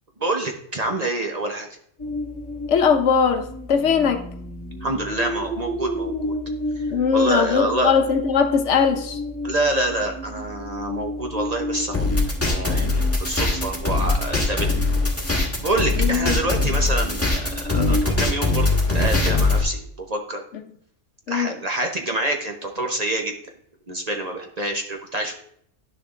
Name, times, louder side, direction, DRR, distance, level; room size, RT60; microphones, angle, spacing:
voice 1, 0.2-1.7 4.8-6.4 6.8-6.9 7.1-7.9 9.4-12.1 12.4-14.7 15.6-20.4 21.3-23.3 23.9-25.3, right 2 dB, 35° right, 0.8 m, -26 dB
sound 1, 2.0-18.1, left 1 dB, 30° left, 2.2 m, -33 dB
voice 2, 2.7-4.2 6.9-9.2 16.0-16.4 17.7-18.0 20.5-20.6 21.3-21.6, left 6 dB, 70° left, 1.1 m, -20 dB
sound 2, 11.9-19.6, left 3 dB, 10° left, 1.5 m, -21 dB
11.0 x 6.7 x 2.4 m
omnidirectional pair, 1.3 m